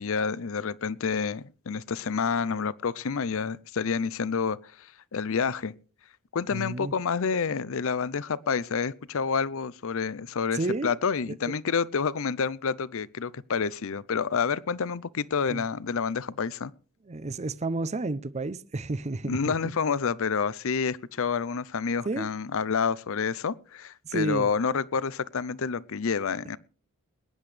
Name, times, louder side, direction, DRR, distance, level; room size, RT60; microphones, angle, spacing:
voice 1, 0.0-5.7 6.3-16.7 19.2-26.6, left 5 dB, 65° left, 0.6 m, -29 dB
voice 2, 6.5-6.9 10.5-10.9 11.5-11.6 15.5-15.6 17.1-19.5 22.1-22.3 24.0-24.5, right 2 dB, 30° right, 0.6 m, -31 dB
21.5 x 10.5 x 3.3 m
head